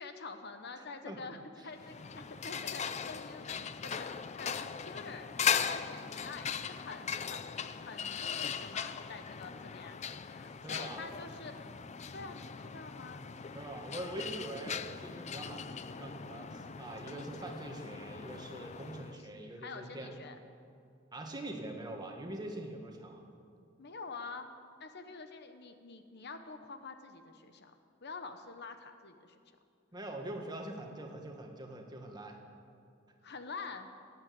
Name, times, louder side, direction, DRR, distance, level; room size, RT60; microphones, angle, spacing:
voice 1, 0.0-5.3 5.6-7.4 7.9-11.5 12.1-13.2 19.2-19.3 19.6-20.4 23.8-24.5 24.8-27.7 28.0-29.3 33.2-33.9, left 4 dB, 55° left, 8 dB, 1.0 m, -47 dB
voice 2, 0.8-1.2 10.6-11.0 13.5-20.2 21.1-23.3 29.9-32.4, right 1 dB, 20° right, 2 dB, 1.7 m, -43 dB
sound 1, 1.7-19.2, left 7 dB, 35° left, 0.5 m, -39 dB
17.0 x 9.0 x 8.6 m, 2.4 s
head